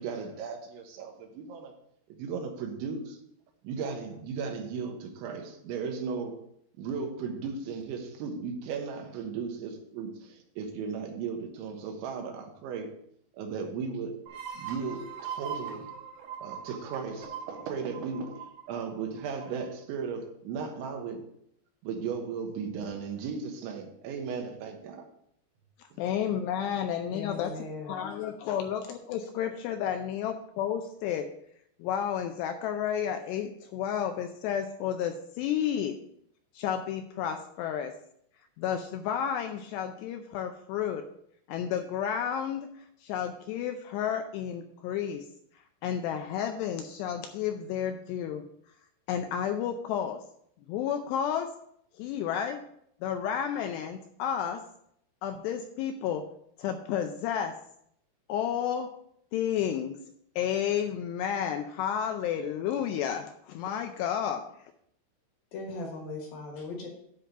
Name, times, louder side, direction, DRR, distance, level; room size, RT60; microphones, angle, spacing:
voice 1, 0.0-1.7 2.1-3.2 3.6-6.4 6.8-13.0 13.3-15.9 16.4-21.3 21.8-25.1 25.9-26.0, right 5 dB, 85° right, 3.5 m, -36 dB
sound 1, 14.3-19.7, right 7 dB, 55° right, 2.2 m, -41 dB
voice 2, 26.0-27.5 27.9-31.3 31.8-36.0 36.5-37.9 38.6-41.1 41.5-42.7 43.0-45.2 45.8-48.4 49.1-50.2 50.7-51.5 52.0-52.6 53.0-54.6 55.2-56.2 56.6-57.5 58.3-58.9 59.3-60.0 60.4-64.4, left 9 dB, 80° left, 2.5 m, -31 dB
voice 3, 27.1-28.1 65.5-66.9, left 3 dB, 60° left, 2.8 m, -38 dB
10.0 x 3.8 x 6.7 m
omnidirectional pair, 5.3 m